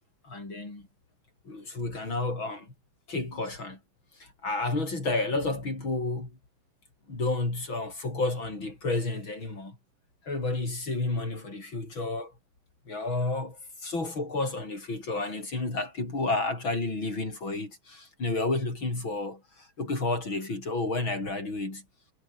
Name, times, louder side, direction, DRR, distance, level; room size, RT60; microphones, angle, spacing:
voice 1, 0.2-0.9 1.5-2.7 3.1-3.8 4.2-6.3 7.1-9.8 10.3-12.3 12.9-21.8, left 2 dB, 75° left, 7.9 m, -31 dB
omnidirectional pair, 2.2 m